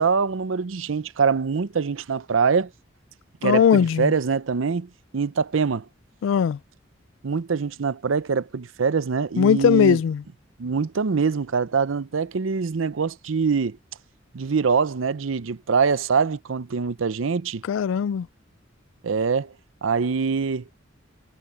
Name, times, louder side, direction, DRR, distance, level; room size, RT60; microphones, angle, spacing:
voice 1, 0.0-2.7 3.4-5.8 7.2-10.0 10.6-13.8 14.3-17.6 19.0-19.5 19.8-20.6, right 5 dB, 85° right, 0.6 m, -24 dB
voice 2, 3.4-4.1 6.2-6.6 9.4-10.2 17.6-18.3, left 7 dB, 75° left, 0.3 m, -19 dB
head